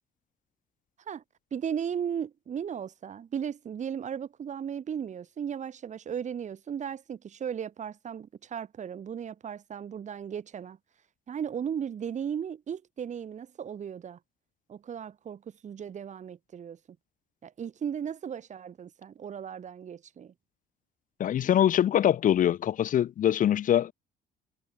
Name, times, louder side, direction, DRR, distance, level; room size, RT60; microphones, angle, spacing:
voice 1, 1.5-10.8 11.3-14.2 14.7-16.8 17.4-20.3, right 8 dB, 45° right, 6.7 m, -36 dB
voice 2, 21.2-23.9, left 10 dB, 50° left, 1.1 m, -23 dB
cardioid pair, 110°, 17 cm